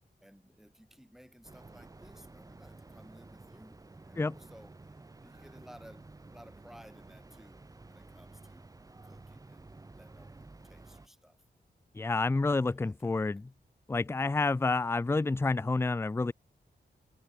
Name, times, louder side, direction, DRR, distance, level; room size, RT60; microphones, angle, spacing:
voice 1, 0.2-8.7 9.0-11.4 12.5-13.1, equal, ahead, 6.6 m, -57 dB
sound 1, 1.4-11.1, right 3 dB, 20° right, 1.0 m, -52 dB
voice 2, 11.9-13.5 13.9-16.3, left 3 dB, 15° left, 0.3 m, -29 dB
wide cardioid pair, 150°, 18 cm